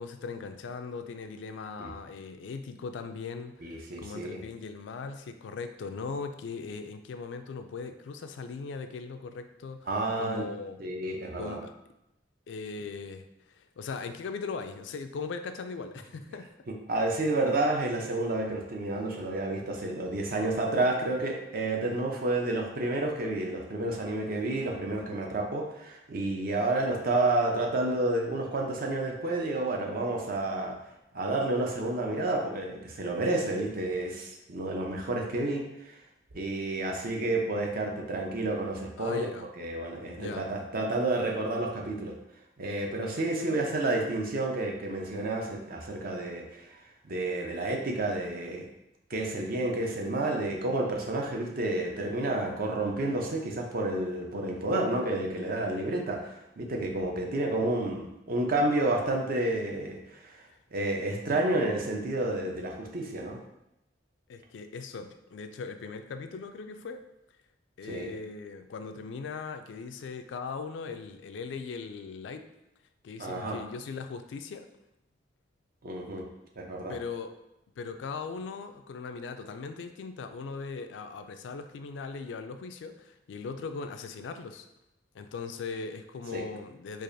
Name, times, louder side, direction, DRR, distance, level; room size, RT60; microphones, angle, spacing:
voice 1, 0.0-9.9 10.2-10.8 11.4-11.7 12.5-16.5 39.0-39.5 40.2-40.5 64.3-67.0 67.8-72.4 73.0-74.7 76.9-77.3 77.8-84.7 85.1-87.0, left 4 dB, 80° left, 8 dB, 0.3 m, -39 dB
voice 2, 3.6-4.4 9.9-10.5 10.8-11.6 16.7-30.8 31.1-36.0 36.3-39.3 39.6-42.1 42.6-46.6 47.0-48.7 49.1-60.3 60.7-63.4 67.9-68.1 73.2-73.6 75.8-76.3 76.6-76.9 86.3-86.4, right 2 dB, 55° right, 1 dB, 0.6 m, -30 dB
4.6 x 2.5 x 2.6 m, 0.87 s
head